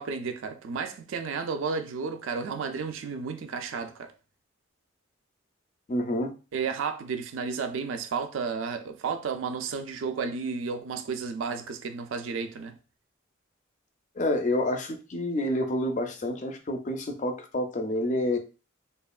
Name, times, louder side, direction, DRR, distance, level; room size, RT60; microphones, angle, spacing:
voice 1, 0.0-4.1 6.5-12.8, right 5 dB, 75° right, 0.4 m, -32 dB
voice 2, 5.9-6.3 14.2-18.4, left 1 dB, 40° left, 0.4 m, -28 dB
2.9 x 2.2 x 2.3 m
head